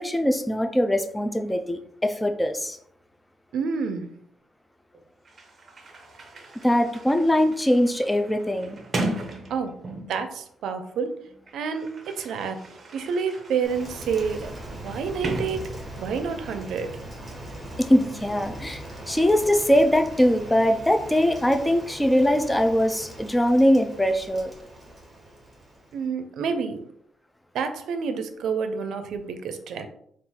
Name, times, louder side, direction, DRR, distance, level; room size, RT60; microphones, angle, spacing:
voice 1, 0.0-2.8 6.6-8.8 17.8-24.5, equal, 5° left, 6 dB, 0.3 m, -22 dB
voice 2, 3.5-4.1 9.5-9.8 10.1-11.2 11.5-12.7 12.9-17.0 25.9-26.8 27.5-29.9, right 6 dB, 65° right, 8 dB, 0.5 m, -29 dB
Sliding door, 4.9-5.0 5.2-10.3 11.2-16.2, right 2 dB, 30° right, 0.7 m, -37 dB
Rain, 13.6-26.1, right 1 dB, 10° right, 1.1 m, -40 dB
3.8 x 2.4 x 4.3 m, 0.66 s
cardioid pair, 155°, 0 cm